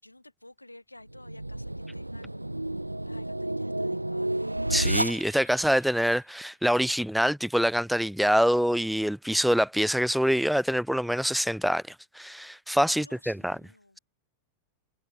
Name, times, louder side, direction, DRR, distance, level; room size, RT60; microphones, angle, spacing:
voice 1, 0.0-4.6 12.8-14.0, left 1 dB, 85° left, 3.5 m, -52 dB
sound 1, 1.1-5.7, right 1 dB, 85° right, 0.6 m, -31 dB
voice 2, 4.7-11.8 12.1-13.6, equal, ahead, 0.3 m, -25 dB
figure-of-eight pair, 90°, 0 cm